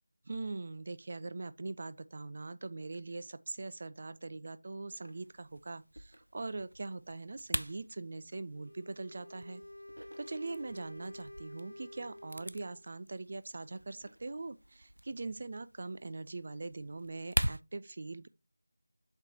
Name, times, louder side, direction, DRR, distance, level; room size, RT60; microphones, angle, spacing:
voice 1, 0.3-9.6 10.2-18.3, right 3 dB, 40° right, 0.5 m, -42 dB
sound 1, 5.0-17.6, equal, 90° right, 0.4 m, -43 dB
Wind instrument woodwind instrument, 8.5-12.9, left 1 dB, 85° left, 0.5 m, -50 dB
7.6 x 4.7 x 2.8 m
figure-of-eight pair, 170°, 0 cm